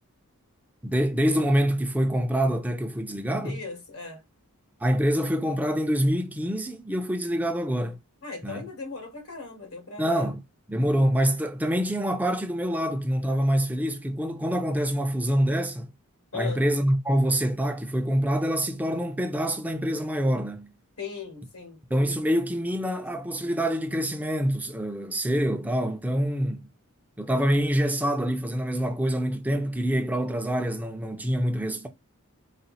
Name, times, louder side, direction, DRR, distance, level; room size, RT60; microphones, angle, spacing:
voice 1, 0.8-3.6 4.8-8.0 8.4-8.7 10.0-10.4 10.7-15.9 16.3-20.7 21.9-26.7 27.2-31.9, equal, 5° right, 0.5 m, -26 dB
voice 2, 3.4-4.2 8.2-10.3 16.3-16.6 21.0-21.8, left 4 dB, 85° left, 1.7 m, -37 dB
4.1 x 2.1 x 4.1 m
head